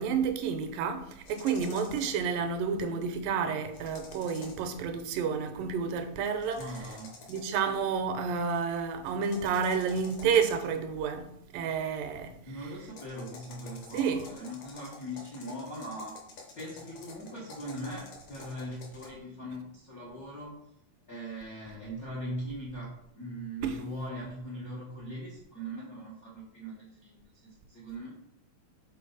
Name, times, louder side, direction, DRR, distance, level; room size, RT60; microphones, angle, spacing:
voice 1, 0.0-6.7 7.3-12.4 13.9-14.3 23.6-23.8, right 6 dB, 85° right, 2.3 m, -30 dB
sound 1, 1.2-2.3 3.7-4.7 6.4-7.7 9.2-10.8 12.9-19.1, left 3 dB, 60° left, 1.4 m, -49 dB
voice 2, 6.6-7.1 12.4-16.2 16.5-20.5 21.1-28.1, equal, 85° left, 0.7 m, -40 dB
6.4 x 3.9 x 3.9 m
omnidirectional pair, 3.9 m